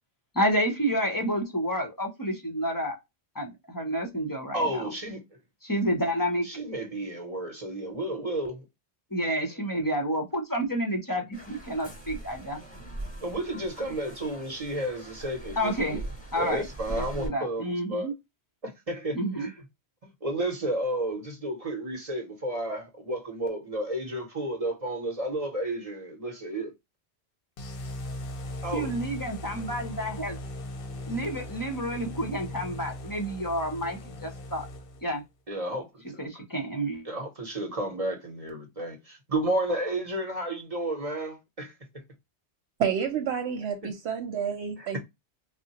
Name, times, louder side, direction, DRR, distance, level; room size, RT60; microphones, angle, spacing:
voice 1, 0.3-3.0 3.3-4.9 5.6-6.5 9.1-12.6 15.6-16.0 16.3-16.6 16.9-18.1 19.1-19.5 28.7-30.4 31.1-34.7 35.0-35.2 36.2-37.0, equal, 25° left, 0.5 m, -29 dB
voice 2, 4.5-5.2 6.4-8.6 13.2-16.0 16.3-18.1 18.6-19.5 20.0-26.7 28.6-28.9 35.5-36.4 37.0-41.7 43.8-43.9 44.8-45.0, right 1 dB, 40° right, 0.8 m, -32 dB
sound 1, 11.3-17.3, right 1 dB, 10° left, 1.0 m, -41 dB
sound 2, 27.6-35.2, left 1 dB, 60° left, 0.7 m, -39 dB
voice 3, 42.8-45.0, right 7 dB, 80° right, 0.9 m, -29 dB
3.6 x 2.0 x 2.7 m
omnidirectional pair, 1.1 m